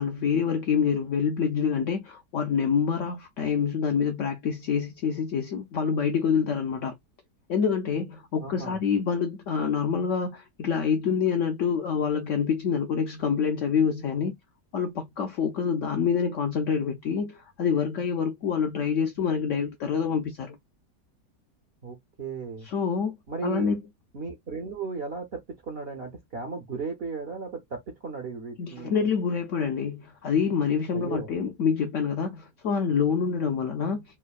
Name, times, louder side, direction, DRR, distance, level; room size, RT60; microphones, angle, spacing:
voice 1, 0.0-6.9 7.5-14.3 14.7-20.6 22.6-23.1 23.4-23.8 28.6-34.0, left 6 dB, 70° left, 0.7 m, -26 dB
voice 2, 8.4-8.8 21.8-22.7 23.3-23.7 24.1-29.1 30.9-31.3, right 4 dB, 55° right, 0.7 m, -35 dB
3.2 x 2.1 x 2.3 m
omnidirectional pair, 1.8 m